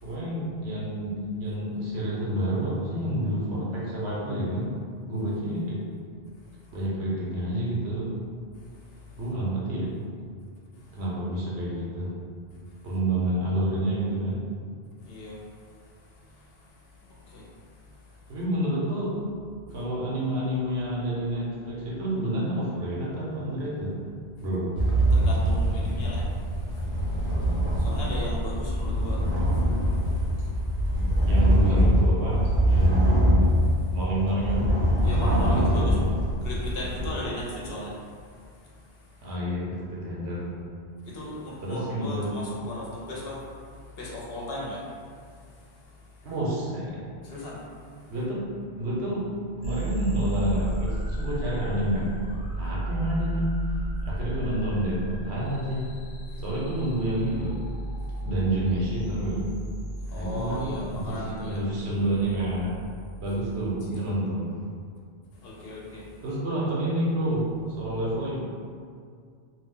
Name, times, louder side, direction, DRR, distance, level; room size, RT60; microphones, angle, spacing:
voice 1, 0.0-4.7 5.0-5.8 6.7-8.1 9.2-9.9 10.9-12.1 12.8-14.4 18.3-19.1 19.7-23.9 24.4-24.7 31.3-33.2 33.9-34.7 35.2-36.0 39.2-40.5 41.6-42.3 46.2-47.0 48.1-48.4 48.8-49.3 49.6-52.1 52.5-53.5 54.1-55.8 56.4-57.5 58.2-59.4 60.1-62.8 63.2-64.5 66.2-67.5 67.8-68.4, right 1 dB, 75° right, -6 dB, 1.1 m, -29 dB
voice 2, 15.0-15.3 17.3-17.4 25.1-26.2 27.8-29.2 35.0-36.1 36.4-37.9 41.1-43.4 44.0-44.8 47.2-47.6 60.1-61.6 63.9-64.1 65.4-66.0, left 1 dB, 70° left, -5 dB, 0.8 m, -36 dB
sound 1, 24.7-37.1, equal, 45° right, 0.6 m, -23 dB
sound 2, 49.6-63.7, right 1 dB, 90° left, 0.9 m, -34 dB
2.4 x 2.2 x 3.7 m, 2.2 s
omnidirectional pair, 1.1 m